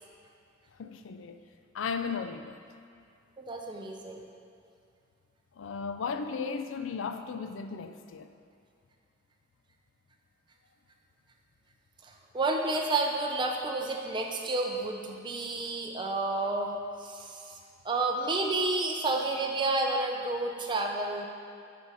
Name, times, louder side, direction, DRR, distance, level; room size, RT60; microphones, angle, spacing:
voice 1, 0.8-1.4 1.7-2.6 5.6-8.3, left 5 dB, 90° left, 8 dB, 0.4 m, -35 dB
voice 2, 3.4-4.3 12.0-16.7 17.0-17.6 17.8-21.3, right 2 dB, 25° right, 1 dB, 0.5 m, -30 dB
8.0 x 4.3 x 4.8 m, 2.4 s
head